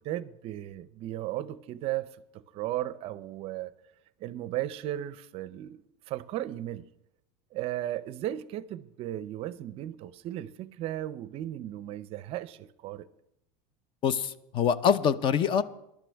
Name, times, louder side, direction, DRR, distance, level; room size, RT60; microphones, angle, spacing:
voice 1, 0.0-3.7 4.2-6.8 7.5-13.1, right 13 dB, 40° right, 0.5 m, -36 dB
voice 2, 14.0-15.6, left 7 dB, 35° left, 0.6 m, -25 dB
21.0 x 12.0 x 3.4 m
supercardioid pair, 145°, 15 cm